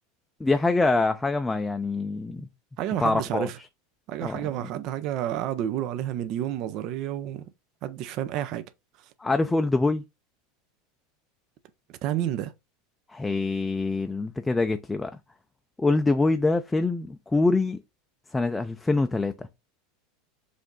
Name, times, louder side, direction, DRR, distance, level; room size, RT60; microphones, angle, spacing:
voice 1, 0.4-2.5 3.0-3.5 4.2-4.7 9.2-10.0 13.1-15.1 15.8-17.8 18.3-19.5, left 3 dB, 10° left, 0.4 m, -25 dB
voice 2, 2.8-3.6 4.1-7.4 7.8-8.6 12.0-12.5, right 11 dB, 50° right, 0.5 m, -30 dB
5.0 x 2.6 x 3.7 m
supercardioid pair, 120°, 0 cm